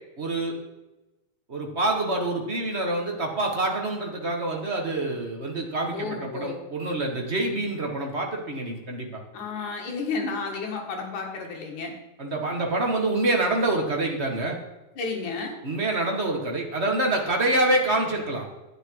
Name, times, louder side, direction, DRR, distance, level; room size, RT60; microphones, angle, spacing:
voice 1, 0.2-0.6 1.5-9.2 12.2-14.6 15.6-18.4, right 2 dB, 40° right, 1 dB, 0.9 m, -26 dB
voice 2, 5.9-6.6 9.3-11.9 15.0-15.5, left 4 dB, 65° left, 1 dB, 3.3 m, -32 dB
12.0 x 9.8 x 4.8 m, 1.0 s
omnidirectional pair, 3.9 m